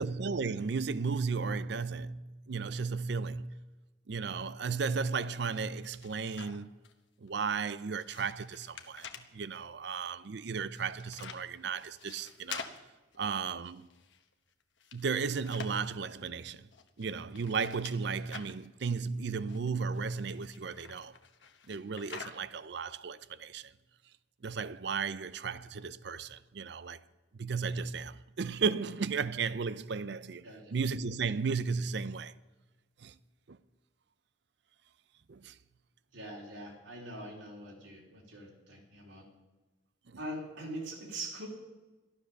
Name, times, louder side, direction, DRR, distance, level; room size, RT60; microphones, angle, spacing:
voice 1, 0.0-3.6 4.1-6.7 7.2-9.1 9.3-12.7 13.2-13.9 14.9-16.7 17.0-21.1 21.7-23.7 24.4-27.0 27.3-32.3 33.0-33.2 33.5-33.6 35.3-35.6 40.1-40.2, right 5 dB, 60° right, 0.5 m, -34 dB
sound 1, 5.1-6.9 7.3-9.3 10.4-14.3 14.6-16.1 16.7-18.7 19.2-22.7, left 6 dB, 70° left, 1.1 m, -49 dB
voice 2, 36.1-39.3 40.2-41.5, right 1 dB, 85° right, 3.6 m, -43 dB
13.5 x 12.5 x 6.5 m
head